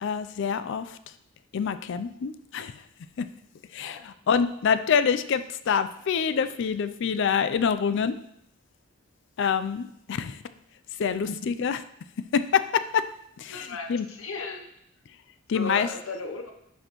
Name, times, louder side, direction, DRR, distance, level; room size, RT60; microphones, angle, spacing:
voice 1, 0.0-1.0 1.5-2.7 3.2-3.3 3.7-8.2 9.4-10.4 11.0-11.8 12.3-13.0 13.4-14.1 15.5-15.9, left 6 dB, 60° left, 12 dB, 0.4 m, -26 dB
voice 2, 13.5-14.7 15.5-16.5, left 3 dB, 80° left, 3 dB, 0.9 m, -36 dB
10.5 x 4.2 x 3.0 m, 0.75 s
head